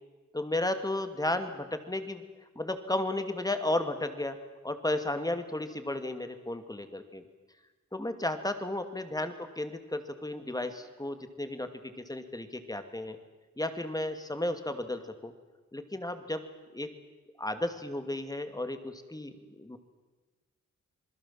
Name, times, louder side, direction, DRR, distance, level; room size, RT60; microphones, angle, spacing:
voice 1, 0.3-2.2 2.6-4.4 4.6-7.2 7.9-13.2 13.6-15.3 15.7-16.4 16.7-16.9 17.4-19.8, left 1 dB, 15° left, 8 dB, 2.5 m, -33 dB
27.5 x 21.0 x 7.6 m, 1.2 s
wide cardioid pair, 105°, 29 cm